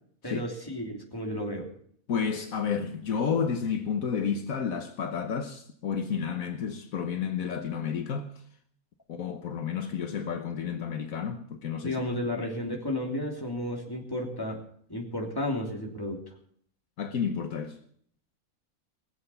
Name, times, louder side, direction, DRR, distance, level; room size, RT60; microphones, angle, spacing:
voice 1, 0.2-1.7 11.8-14.6 14.9-16.2, left 1 dB, 15° left, 3.0 m, -32 dB
voice 2, 2.1-8.3 9.1-12.0 17.0-17.8, left 6 dB, 70° left, 1.4 m, -31 dB
20.5 x 7.9 x 7.0 m
omnidirectional pair, 1.5 m